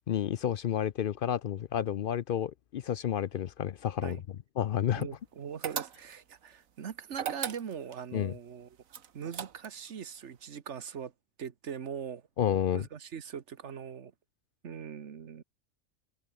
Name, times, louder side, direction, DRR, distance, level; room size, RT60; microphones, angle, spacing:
voice 1, 0.1-4.2 4.6-5.1 8.1-8.3 12.4-12.8, left 9 dB, 60° left, 0.5 m, -30 dB
voice 2, 5.0-8.8 9.1-11.1 11.4-12.2 12.7-14.1 14.6-15.4, right 7 dB, 60° right, 1.4 m, -41 dB
sound 1, 5.6-6.3 7.1-8.0 8.9-9.9, right 8 dB, 85° right, 1.6 m, -37 dB
omnidirectional pair, 1.4 m